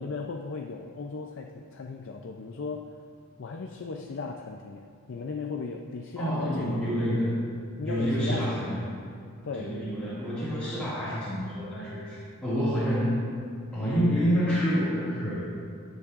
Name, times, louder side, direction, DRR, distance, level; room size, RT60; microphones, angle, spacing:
voice 1, 0.0-2.9 3.4-6.8 7.8-8.8 9.4-9.8 13.9-14.1, left 4 dB, 55° left, 2 dB, 0.5 m, -37 dB
voice 2, 6.2-7.4 7.9-8.8 9.5-13.3 13.7-15.4, equal, 5° left, -12 dB, 2.0 m, -28 dB
18.0 x 7.3 x 2.5 m, 2.3 s
head